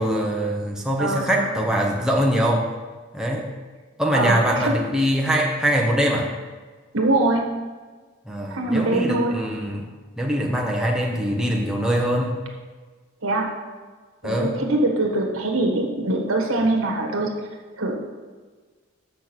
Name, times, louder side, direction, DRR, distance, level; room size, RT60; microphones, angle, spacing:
voice 1, 0.0-2.7 3.1-3.5 4.0-6.3 8.3-9.8 10.2-12.4 14.2-14.6, equal, 5° right, -2 dB, 0.9 m, -23 dB
voice 2, 1.0-1.5 4.1-4.7 6.9-7.4 8.5-9.4 13.2-13.5 14.2-17.3 17.8-18.0, right 2 dB, 85° right, 1 dB, 1.6 m, -23 dB
6.9 x 6.3 x 6.2 m, 1.4 s
head